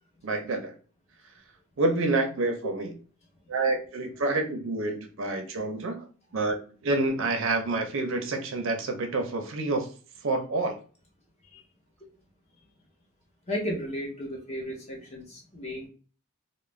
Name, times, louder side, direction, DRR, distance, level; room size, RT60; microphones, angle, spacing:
voice 1, 0.2-0.7 1.8-2.9 3.5-6.1 6.3-6.6 6.8-9.9 10.2-10.8, right 2 dB, 60° right, 0.5 m, -28 dB
voice 2, 13.5-15.9, equal, 30° left, 0.7 m, -34 dB
2.4 x 2.0 x 3.1 m
head